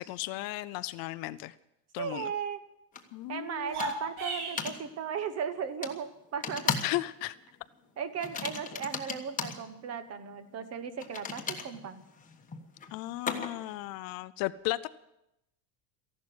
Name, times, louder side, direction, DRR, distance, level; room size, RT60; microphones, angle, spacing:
voice 1, 0.0-1.5 1.9-2.3 3.1-3.7 6.8-7.3 12.9-14.9, left 18 dB, 50° left, 15 dB, 0.5 m, -35 dB
voice 2, 2.0-2.6 3.3-6.8 8.0-12.0, right 7 dB, 35° right, 12 dB, 1.1 m, -36 dB
sound 1, 2.9-3.0 3.8-4.1 4.6-4.8 5.8-6.0 6.4-7.0 7.3-7.5 8.2-9.6 11.0-13.7, left 6 dB, 15° left, 1.3 m, -36 dB
sound 2, 3.6-4.8, right 2 dB, 60° right, 4.5 m, -35 dB
15.0 x 11.5 x 7.7 m, 0.86 s
cardioid pair, 165°, 46 cm